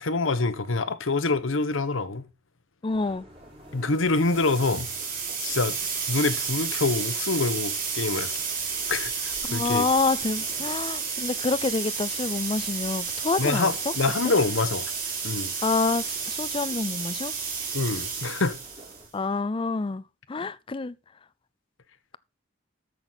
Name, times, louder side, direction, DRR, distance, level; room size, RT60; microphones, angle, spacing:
voice 1, 0.0-2.2 3.7-4.9 5.4-5.8 6.1-8.3 8.9-9.9 13.4-14.8 15.2-15.5 17.7-18.6, left 3 dB, 90° left, 1.0 m, -26 dB
voice 2, 2.8-3.3 9.5-13.7 15.6-17.3 19.1-20.0 20.3-20.9, left 3 dB, 25° left, 0.4 m, -27 dB
sound 1, 2.9-19.1, right 1 dB, 30° right, 4.7 m, -50 dB
sound 2, 4.1-19.0, right 5 dB, 45° right, 3.4 m, -31 dB
14.0 x 6.1 x 3.9 m
head